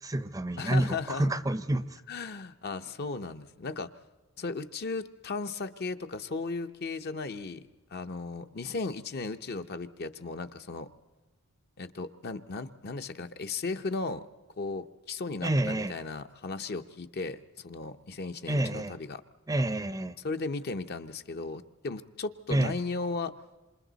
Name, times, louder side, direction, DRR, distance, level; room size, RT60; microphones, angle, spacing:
voice 1, 0.0-2.0 15.4-15.9 18.5-19.0 19.5-20.2 22.5-22.7, right 1 dB, 15° right, 12 dB, 0.6 m, -28 dB
voice 2, 0.6-1.3 2.1-3.9 4.4-10.9 11.8-14.3 14.6-19.2 20.2-23.3, left 3 dB, 50° left, 8 dB, 0.7 m, -36 dB
27.5 x 27.0 x 4.0 m, 1.1 s
head